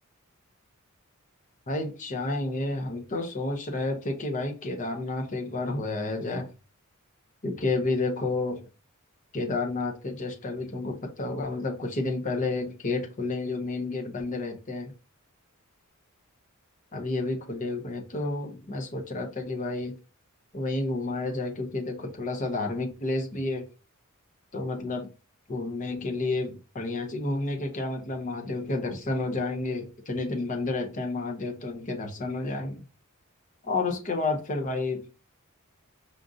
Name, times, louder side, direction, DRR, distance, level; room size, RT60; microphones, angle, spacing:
voice 1, 1.7-6.5 7.4-8.6 9.3-14.9 16.9-20.0 20.5-23.7 24.5-25.1 25.5-32.9 33.6-35.1, left 2 dB, 35° left, 0.7 m, -30 dB
5.1 x 2.4 x 2.6 m
head